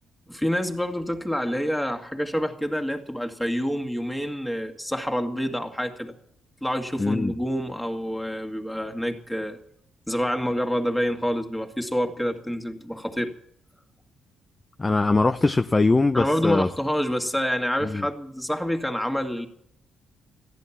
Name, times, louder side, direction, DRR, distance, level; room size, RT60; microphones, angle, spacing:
voice 1, 0.3-6.1 6.6-9.6 10.1-13.3 16.1-19.5, equal, 5° left, 2.3 m, -27 dB
voice 2, 7.0-7.3 14.8-16.7 17.8-18.0, left 3 dB, 20° left, 0.6 m, -21 dB
15.0 x 11.0 x 7.3 m
cardioid pair, 90°, 0 cm